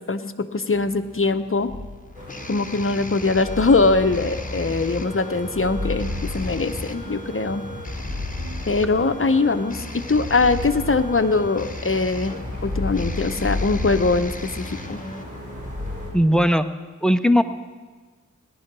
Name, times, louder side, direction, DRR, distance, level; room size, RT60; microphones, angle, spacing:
voice 1, 0.0-1.7 2.5-7.6 8.7-12.3 12.6-15.0, left 3 dB, 45° left, 9 dB, 0.8 m, -22 dB
sound 1, 0.7-15.2, left 2 dB, 25° left, 1.2 m, -37 dB
sound 2, 1.7-2.4 3.2-4.8 5.4-7.2 7.7-9.3 10.1-11.8 12.4-14.9 15.5-16.1, left 2 dB, 40° right, 2.9 m, -33 dB
sound 3, 2.1-16.1, left 1 dB, 25° right, 5.1 m, -38 dB
voice 2, 16.1-16.6 17.0-17.4, equal, ahead, 8 dB, 0.7 m, -17 dB
17.5 x 11.0 x 6.1 m, 1.4 s
wide cardioid pair, 55°, 31 cm